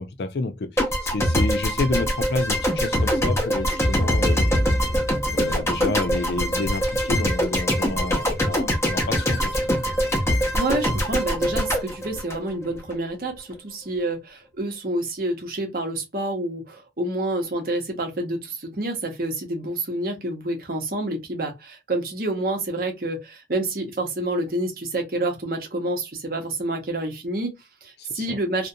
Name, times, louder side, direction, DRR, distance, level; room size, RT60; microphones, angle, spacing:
voice 1, 0.0-4.4 5.3-9.7 28.0-28.4, left 3 dB, 65° left, 0.5 m, -29 dB
sound 1, 0.8-13.0, equal, 15° left, 0.6 m, -23 dB
voice 2, 10.5-28.7, right 2 dB, 55° right, 0.8 m, -28 dB
2.5 x 2.2 x 2.6 m
head